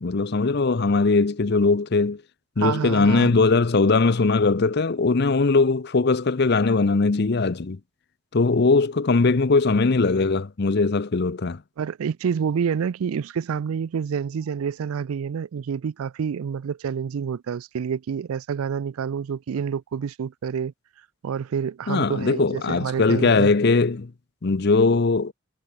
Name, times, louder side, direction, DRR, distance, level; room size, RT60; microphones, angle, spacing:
voice 1, 0.0-2.2 2.6-7.8 8.3-11.6 21.9-24.1 24.4-25.3, left 3 dB, 50° left, 0.6 m, -20 dB
voice 2, 2.6-3.3 11.8-20.7 21.2-23.5, right 7 dB, 90° right, 0.4 m, -28 dB
head